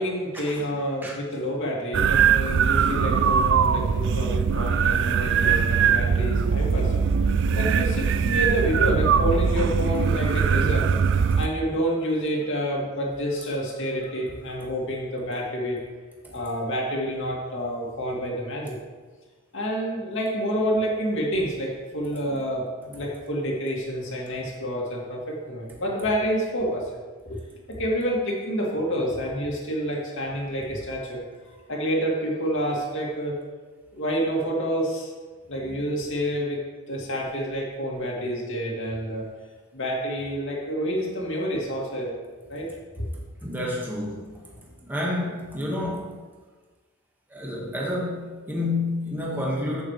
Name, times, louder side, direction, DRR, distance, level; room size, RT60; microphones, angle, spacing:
voice 1, 0.0-15.8 16.3-18.8 19.5-26.8 27.2-27.4 27.7-33.4 33.9-35.1 35.5-36.6 36.9-39.2 39.7-42.2 42.5-42.7 42.9-43.1, equal, 55° left, -2 dB, 2.4 m, -28 dB
sound 1, 1.9-11.5, right 6 dB, 55° right, 0.4 m, -21 dB
voice 2, 43.4-44.3 44.8-46.1 47.3-49.8, left 1 dB, 10° right, -4 dB, 1.7 m, -29 dB
15.0 x 7.0 x 3.3 m, 1.4 s
head